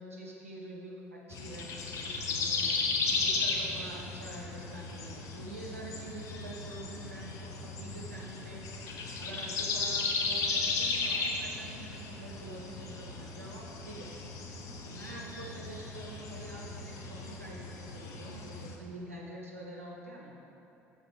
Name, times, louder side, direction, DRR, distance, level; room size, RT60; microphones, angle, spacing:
voice 1, 0.0-2.8 3.2-8.6 9.2-14.1 14.8-20.3, right 2 dB, 80° right, -3 dB, 1.0 m, -46 dB
sound 1, 1.3-18.7, left 4 dB, 50° left, 1.0 m, -35 dB
7.6 x 6.8 x 5.1 m, 2.9 s
figure-of-eight pair, 60°, 7 cm